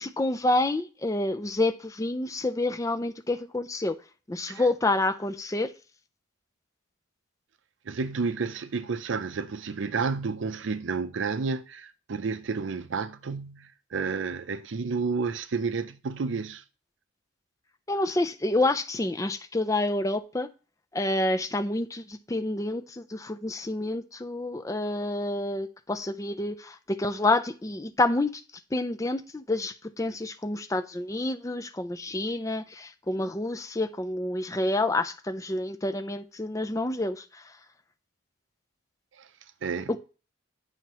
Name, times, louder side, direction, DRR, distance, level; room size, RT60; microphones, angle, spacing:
voice 1, 0.0-3.9 4.3-5.7 17.9-20.5 20.9-28.4 28.7-37.6, left 2 dB, 15° left, 0.4 m, -28 dB
voice 2, 7.9-16.6 39.2-39.3 39.6-40.0, right 4 dB, 70° right, 0.5 m, -31 dB
9.2 x 5.6 x 3.0 m
head